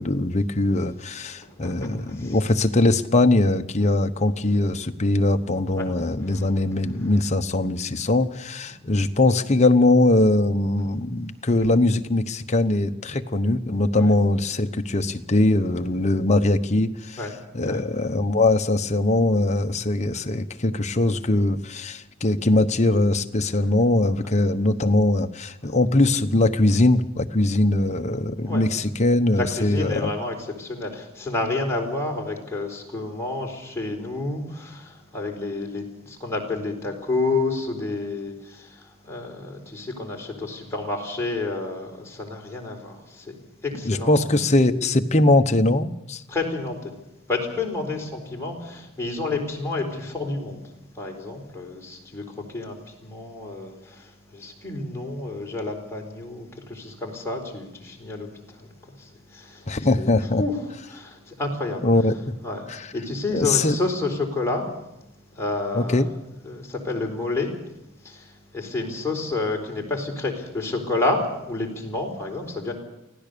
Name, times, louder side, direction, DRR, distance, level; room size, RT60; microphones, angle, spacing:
voice 1, 0.0-17.2 17.5-30.1 43.9-46.2 59.7-60.4 61.8-62.2 62.7-62.8 63.3-63.8 65.7-66.1, left 2 dB, 35° left, 7 dB, 1.0 m, -21 dB
voice 2, 1.2-2.4 5.8-5.9 6.3-6.5 8.8-8.9 13.9-14.1 17.2-17.3 17.6-17.8 24.2-24.3 28.4-28.7 29.3-43.4 43.6-44.4 46.3-46.9 47.3-60.1 60.4-60.6 60.9-61.9 62.4-64.7 65.3-66.1 66.4-67.5 68.0-72.7, left 2 dB, 15° left, -1 dB, 4.4 m, -30 dB
24.5 x 16.5 x 6.9 m, 0.90 s
head